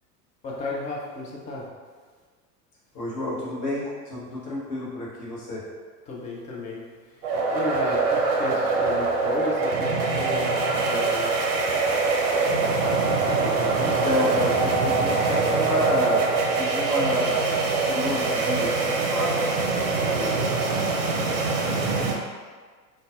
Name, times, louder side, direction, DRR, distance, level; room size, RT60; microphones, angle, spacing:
voice 1, 0.4-1.7 6.1-6.8 7.5-11.3, left 2 dB, 15° left, -3 dB, 0.4 m, -34 dB
voice 2, 2.9-5.6 8.5-8.6 13.8-17.4 17.8-19.3 20.1-20.5 21.7-22.1, left 1 dB, 40° left, -6 dB, 1.0 m, -30 dB
sound 1, 7.2-22.1, right 3 dB, 50° right, 0.6 m, -23 dB
3.8 x 2.3 x 2.5 m, 1.5 s
figure-of-eight pair, 80°, 49 cm